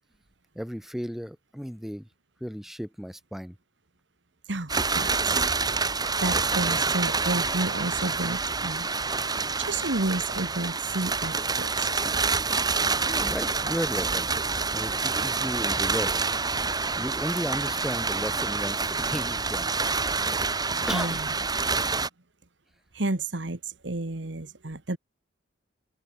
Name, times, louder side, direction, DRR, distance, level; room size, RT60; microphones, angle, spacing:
voice 1, 0.6-2.1 2.4-3.6 13.0-14.3 14.7-16.3 17.0-19.7 20.9-21.2, equal, ahead, 3.8 m, -34 dB
voice 2, 4.5-5.3 6.2-8.8 9.6-12.0 20.8-21.3 22.9-25.0, right 2 dB, 65° right, 1.6 m, -31 dB
sound 1, 4.7-22.1, right 4 dB, 20° right, 3.7 m, -27 dB
open air
head